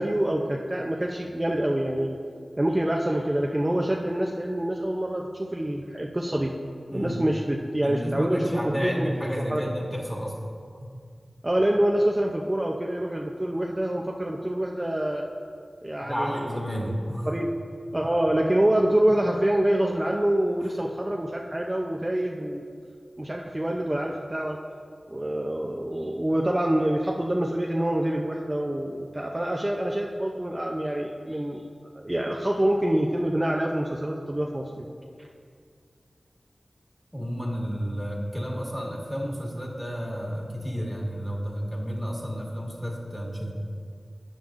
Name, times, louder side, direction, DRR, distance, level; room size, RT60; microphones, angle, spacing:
voice 1, 0.0-2.2 2.6-6.5 6.9-9.1 9.5-9.6 11.4-15.3 15.8-16.5 17.2-17.5 17.9-22.7 23.2-24.6 25.1-31.6 31.9-34.9, right 1 dB, 25° right, 0 dB, 0.6 m, -26 dB
voice 2, 7.8-10.4 10.8-10.9 16.0-17.3 20.6-20.7 37.1-43.5, equal, 10° left, -3 dB, 1.8 m, -31 dB
11.5 x 9.0 x 2.5 m, 2.2 s
wide cardioid pair, 70°, 0 cm